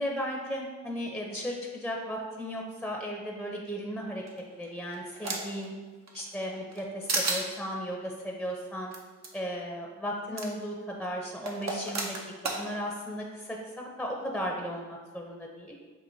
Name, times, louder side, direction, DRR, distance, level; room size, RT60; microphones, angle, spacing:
voice 1, 0.0-4.2 4.6-5.7 6.1-8.9 9.3-12.2 12.4-15.8, equal, ahead, 0 dB, 0.7 m, -35 dB
sound 1, 4.3-5.6 6.1-6.8 7.1-7.4 8.9-9.0 9.2-9.3 10.4-10.5 11.5-12.6, right 2 dB, 60° right, 0.7 m, -32 dB
6.1 x 2.5 x 2.7 m, 1.4 s
cardioid pair, 40°, 31 cm